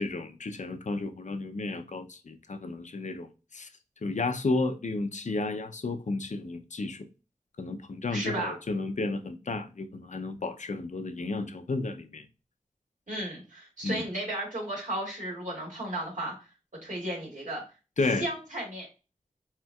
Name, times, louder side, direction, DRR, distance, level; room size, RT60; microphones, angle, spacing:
voice 1, 0.0-3.7 4.0-7.1 7.6-12.3 13.8-14.1 18.0-18.3, left 3 dB, 65° left, 0.6 m, -32 dB
voice 2, 8.1-8.5 13.1-16.3 16.8-17.6 18.2-18.9, right 1 dB, 75° right, 2.4 m, -34 dB
4.3 x 4.2 x 2.3 m
wide cardioid pair, 50°, 13 cm